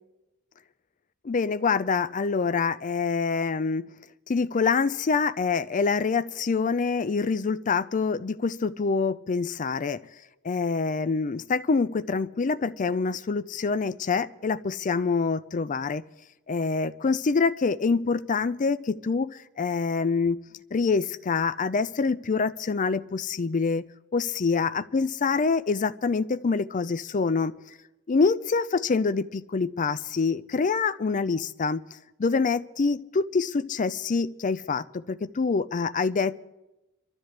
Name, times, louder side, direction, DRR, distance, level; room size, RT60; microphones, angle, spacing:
voice 1, 1.2-3.9 4.3-10.0 10.4-16.0 16.5-20.4 20.7-23.9 24.1-27.5 28.1-31.8 32.2-36.4, left 4 dB, 35° left, 14 dB, 0.4 m, -26 dB
25.0 x 13.0 x 3.3 m, 0.99 s
head